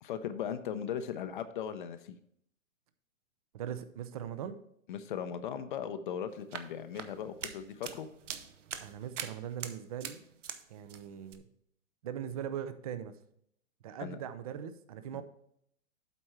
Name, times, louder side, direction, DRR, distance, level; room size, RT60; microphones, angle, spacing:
voice 1, 0.0-2.2 4.9-8.1 14.0-14.2 15.1-15.2, left 8 dB, 40° left, 11 dB, 0.6 m, -38 dB
voice 2, 3.5-4.6 8.8-10.2 10.7-11.4 12.0-13.1 13.8-15.2, right 9 dB, 30° right, 12 dB, 0.5 m, -40 dB
sound 1, 6.3-10.6 10.9-11.4, right 8 dB, 65° right, 0.9 m, -43 dB
8.1 x 4.4 x 5.7 m, 0.71 s
hypercardioid pair, 135°, 40 cm